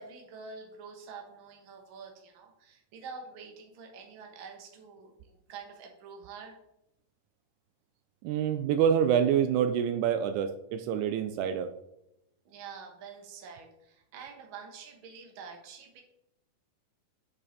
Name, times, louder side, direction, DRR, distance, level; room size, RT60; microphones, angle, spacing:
voice 1, 0.0-6.6 12.5-16.0, right 5 dB, 50° right, 2 dB, 1.8 m, -47 dB
voice 2, 8.2-11.7, right 8 dB, 80° right, 9 dB, 2.0 m, -26 dB
8.9 x 5.4 x 4.1 m, 0.84 s
omnidirectional pair, 3.5 m